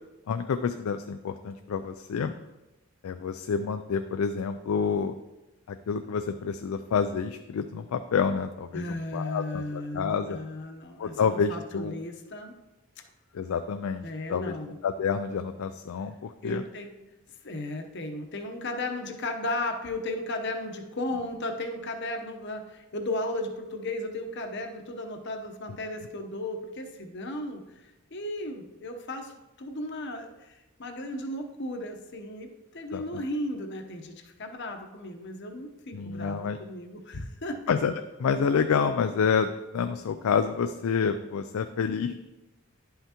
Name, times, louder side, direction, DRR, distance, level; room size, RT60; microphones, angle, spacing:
voice 1, 0.3-2.4 3.0-5.1 5.7-10.4 11.0-11.9 13.3-14.0 14.3-14.5 14.8-16.6 32.9-33.0 35.9-36.6 37.7-37.9 38.2-42.1, left 6 dB, 80° left, 8 dB, 0.4 m, -28 dB
voice 2, 8.7-12.5 14.0-14.8 16.4-16.9 17.4-27.6 28.1-29.3 29.6-30.5 30.8-37.6, left 1 dB, 55° left, 4 dB, 0.8 m, -35 dB
11.0 x 5.7 x 2.9 m, 1.0 s
head